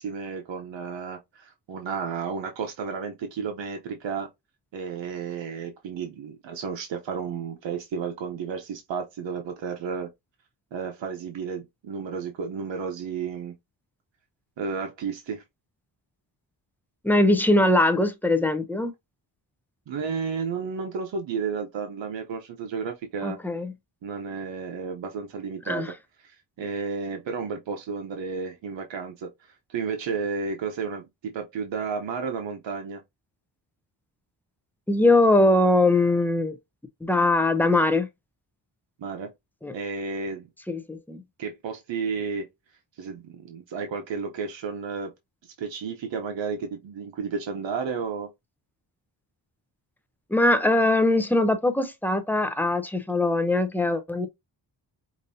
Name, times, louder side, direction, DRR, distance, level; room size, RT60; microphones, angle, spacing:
voice 1, 0.0-4.3 4.7-10.1 10.7-13.5 14.6-15.4 19.9-23.4 24.0-25.9 26.2-29.3 29.7-31.1 31.3-33.0 39.0-39.3 39.7-40.5 41.4-42.4 43.0-45.1 45.4-48.3, right 5 dB, 80° right, 0.9 m, -32 dB
voice 2, 17.0-18.9 23.2-23.7 25.7-25.9 34.9-36.6 37.0-38.1 39.6-39.7 40.7-41.2 50.3-54.3, left 2 dB, 5° left, 0.6 m, -21 dB
5.2 x 2.7 x 2.6 m
wide cardioid pair, 120°, 44 cm